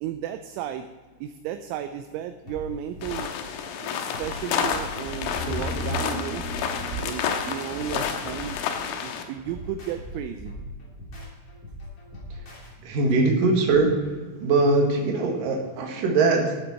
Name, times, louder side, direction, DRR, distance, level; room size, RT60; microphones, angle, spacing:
voice 1, 0.0-0.9 1.2-3.3 3.8-6.5 6.9-8.6 9.0-10.5, right 10 dB, 85° right, 8 dB, 2.7 m, -34 dB
sound 1, 2.5-12.7, left 1 dB, 35° left, 3.4 m, -41 dB
sound 2, 3.0-9.2, left 7 dB, 80° left, 3.5 m, -30 dB
sound 3, 5.3-8.7 9.0-9.1, left 1 dB, 65° left, 3.0 m, -35 dB
voice 2, 12.8-13.9 14.4-16.5, right 3 dB, 55° right, 1 dB, 2.8 m, -21 dB
15.0 x 8.1 x 4.4 m, 1.4 s
omnidirectional pair, 5.9 m